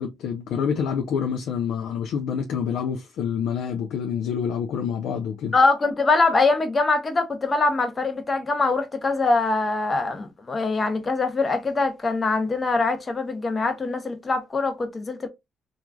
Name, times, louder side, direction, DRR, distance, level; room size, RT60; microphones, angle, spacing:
voice 1, 0.0-5.5, left 7 dB, 80° left, 0.5 m, -27 dB
voice 2, 5.5-15.3, left 3 dB, 30° left, 0.8 m, -23 dB
3.0 x 2.4 x 2.2 m
cardioid pair, 85°, 0 cm